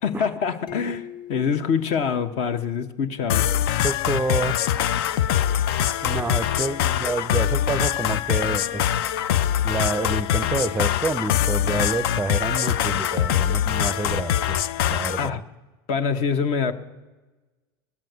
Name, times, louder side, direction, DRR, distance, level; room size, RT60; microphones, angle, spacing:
voice 1, 0.0-3.5 15.2-15.4 15.9-16.7, left 6 dB, 60° left, 9 dB, 1.1 m, -25 dB
sound 1, 0.7-3.2, left 11 dB, 35° left, 1.8 m, -42 dB
sound 2, 3.3-15.3, left 10 dB, 80° left, 0.5 m, -23 dB
voice 2, 3.8-4.6 6.0-8.8 9.6-14.6 14.9-15.4, right 3 dB, 10° right, 18 dB, 0.5 m, -28 dB
17.5 x 7.5 x 9.4 m, 1.2 s
supercardioid pair, 100°, 13 cm